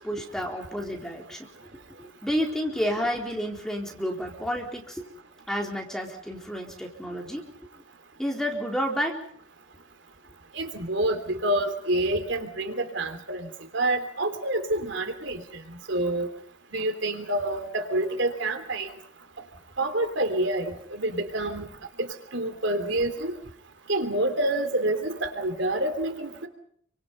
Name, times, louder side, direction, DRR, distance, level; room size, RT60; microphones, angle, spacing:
voice 1, 0.0-1.5 2.0-5.1 5.5-7.4 8.2-9.2, equal, ahead, 0 dB, 4.1 m, -30 dB
voice 2, 10.5-13.5 13.7-15.4 15.9-16.3 16.7-18.9 19.8-21.7 22.0-23.3 23.9-26.5, right 1 dB, 65° right, 7 dB, 3.3 m, -27 dB
28.5 x 25.0 x 5.5 m, 0.65 s
head